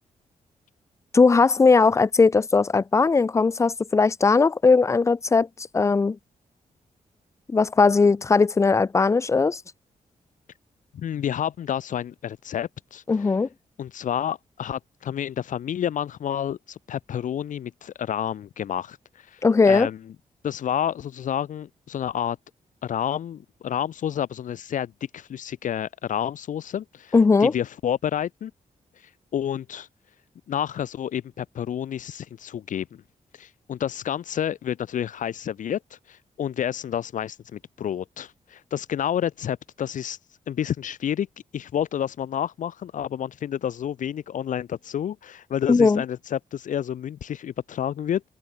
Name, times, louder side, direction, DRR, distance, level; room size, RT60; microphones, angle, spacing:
voice 1, 1.1-5.5 5.7-6.2 7.5-9.6 13.1-13.5 19.4-19.9 27.1-27.5 45.7-46.0, left 4 dB, 20° left, 0.5 m, -18 dB
voice 2, 10.9-13.3 13.8-20.0 20.4-22.4 22.8-27.1 27.4-28.5 29.0-29.9 30.5-33.0 33.4-35.8 36.1-40.2 40.5-41.3 41.5-48.2, left 9 dB, 70° left, 0.8 m, -29 dB
open air
wide cardioid pair, 170°, 14 cm